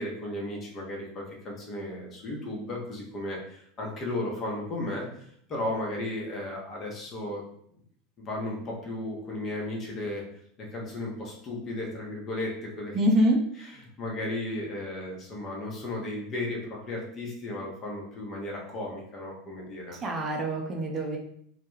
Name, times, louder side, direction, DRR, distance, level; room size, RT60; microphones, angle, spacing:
voice 1, 0.0-7.4 8.2-10.2 10.6-13.0 14.0-20.0, left 1 dB, 35° left, -2 dB, 0.8 m, -35 dB
voice 2, 12.9-13.4 20.0-21.2, right 1 dB, 30° right, 1 dB, 0.5 m, -25 dB
2.2 x 2.2 x 3.1 m, 0.67 s
hypercardioid pair, 80°, 0 cm